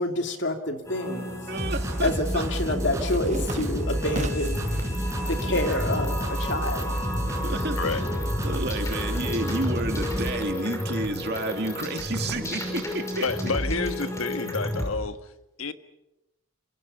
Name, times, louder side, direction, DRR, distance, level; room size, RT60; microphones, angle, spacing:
voice 1, 0.0-1.4 2.0-4.6 5.3-6.9, left 1 dB, 55° left, 2.7 m, -28 dB
sound 1, 0.8-14.9, left 1 dB, 15° left, 5.5 m, -33 dB
sound 2, 0.8-1.6 1.9-4.7 5.2-5.8 6.1-7.8, right 2 dB, 35° right, 1.4 m, -38 dB
voice 2, 1.5-2.4 5.6-5.8 7.4-8.0 8.4-13.2, right 2 dB, 50° right, 2.6 m, -31 dB
sound 3, 1.6-10.3, equal, 15° right, 4.8 m, -30 dB
voice 3, 13.2-15.3 15.6-15.7, left 4 dB, 85° left, 1.4 m, -29 dB
29.0 x 26.5 x 5.6 m
head